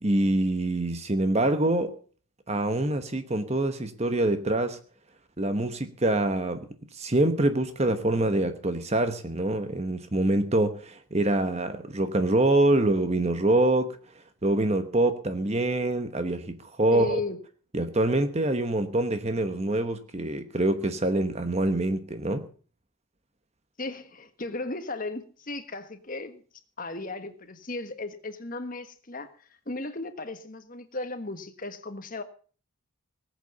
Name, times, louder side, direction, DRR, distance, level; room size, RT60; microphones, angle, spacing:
voice 1, 0.0-2.0 2.5-4.8 5.4-6.7 6.9-14.0 14.4-17.2 17.7-22.5, right 1 dB, 30° right, 1.0 m, -25 dB
voice 2, 16.9-17.4 23.8-26.4 26.8-29.4 29.7-32.2, left 2 dB, 40° left, 1.5 m, -35 dB
19.0 x 8.1 x 6.8 m
head